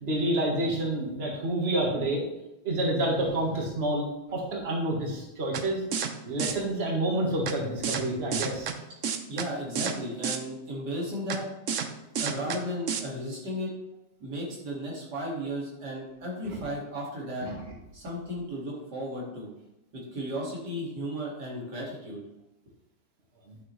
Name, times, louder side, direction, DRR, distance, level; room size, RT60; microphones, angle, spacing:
voice 1, 0.0-2.2 2.6-5.8 6.3-8.7 16.5-16.6 17.5-17.6 23.5-23.6, right 1 dB, 40° right, -1 dB, 1.7 m, -28 dB
sound 1, 5.5-5.6 5.9-6.1 6.4-6.5 7.5-7.6 7.8-8.0 8.3-8.7 9.0-9.5 9.8-9.9 10.2-10.4 11.3-11.4 11.7-11.9 12.2-12.6 12.9-13.0, right 7 dB, 60° right, 1.0 m, -29 dB
voice 2, 9.3-11.5 12.2-13.7 14.2-17.5 17.9-19.5 19.9-22.2, equal, 85° right, -3 dB, 2.9 m, -34 dB
11.0 x 6.0 x 3.2 m, 0.95 s
omnidirectional pair, 1.7 m